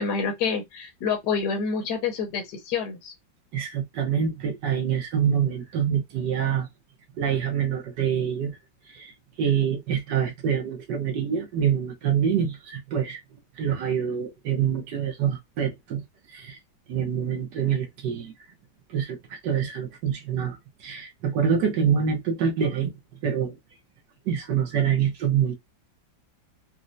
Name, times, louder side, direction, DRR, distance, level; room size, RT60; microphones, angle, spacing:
voice 1, 0.0-3.1, left 5 dB, 65° left, 1.3 m, -27 dB
voice 2, 3.5-6.7 7.2-8.6 8.9-13.2 13.6-16.0 16.3-16.6 16.9-18.3 18.9-22.9 23.2-23.6 24.3-25.5, right 8 dB, 65° right, 1.4 m, -26 dB
4.2 x 2.1 x 2.5 m
omnidirectional pair, 2.1 m